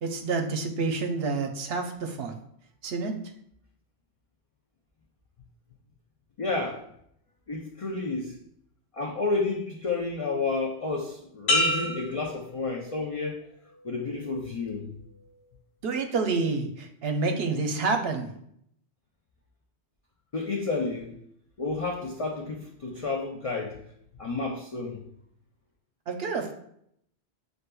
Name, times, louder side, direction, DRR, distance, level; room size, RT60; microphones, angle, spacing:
voice 1, 0.0-2.4 2.8-3.2 15.8-18.3 26.1-26.5, right 4 dB, 70° right, 0.8 m, -28 dB
voice 2, 6.4-6.9 7.5-8.4 8.9-13.4 13.8-14.9 20.3-21.2 21.6-23.8 24.2-25.0, left 3 dB, 45° left, 0.4 m, -31 dB
sound 1, 11.5-13.3 13.8-14.2, left 1 dB, 65° left, 1.3 m, -29 dB
7.7 x 2.6 x 2.2 m
omnidirectional pair, 1.1 m